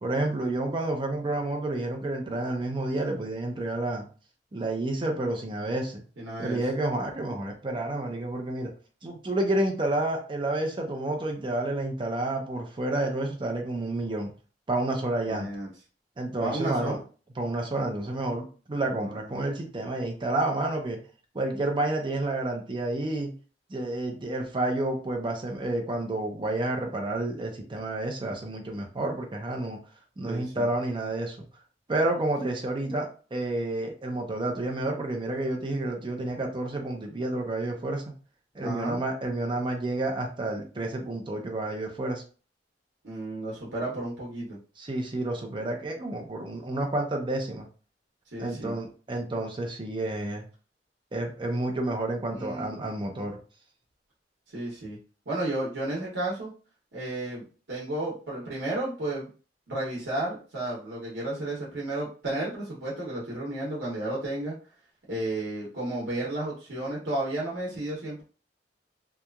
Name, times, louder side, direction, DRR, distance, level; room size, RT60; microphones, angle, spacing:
voice 1, 0.0-4.0 4.5-6.0 6.4-8.7 9.0-14.3 14.7-15.5 16.2-17.0 17.4-21.0 21.3-23.3 23.7-29.8 30.2-31.4 31.9-38.0 38.5-42.2 44.8-47.7 48.4-50.5 51.1-53.4, right 2 dB, 30° right, 2 dB, 0.5 m, -30 dB
voice 2, 6.2-6.6 15.3-15.7 16.4-17.0 18.9-19.2 30.2-30.7 38.6-39.0 43.0-44.6 48.3-48.7 52.3-52.9 54.5-55.0 55.3-56.5 56.9-59.3 59.7-64.5 65.1-68.2, right 1 dB, 80° right, -5 dB, 0.9 m, -32 dB
2.8 x 2.3 x 2.3 m, 0.37 s
head